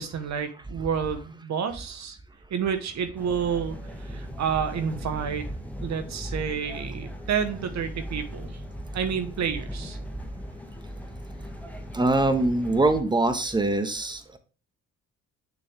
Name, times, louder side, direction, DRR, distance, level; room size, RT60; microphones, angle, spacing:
voice 1, 0.0-2.2 2.5-5.5 5.8-8.6 8.9-10.0, right 7 dB, 65° right, 8 dB, 1.1 m, -29 dB
sound 1, 3.2-13.0, equal, 5° left, 1.3 m, -38 dB
voice 2, 11.9-14.4, right 2 dB, 15° right, 7 dB, 1.3 m, -23 dB
6.6 x 6.4 x 3.4 m, 0.36 s
cardioid pair, 90°, 30 cm